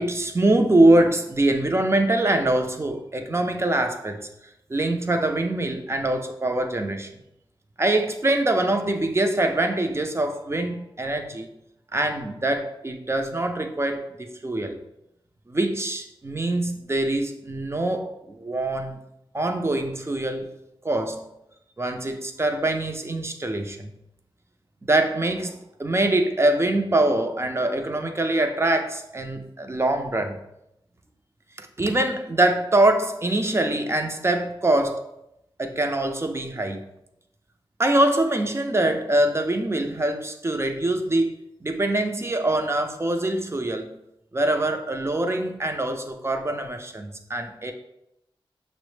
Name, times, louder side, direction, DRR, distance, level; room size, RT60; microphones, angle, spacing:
voice 1, 0.0-4.2 4.7-7.1 7.8-11.5 11.9-14.8 15.5-19.0 19.3-20.5 20.8-21.3 21.8-23.9 24.8-30.4 31.6-35.0 35.6-36.8 37.8-44.0 44.3-47.7, right 1 dB, 25° right, 0.5 m, -24 dB
6.0 x 2.1 x 3.2 m
cardioid pair, 50°, 10 cm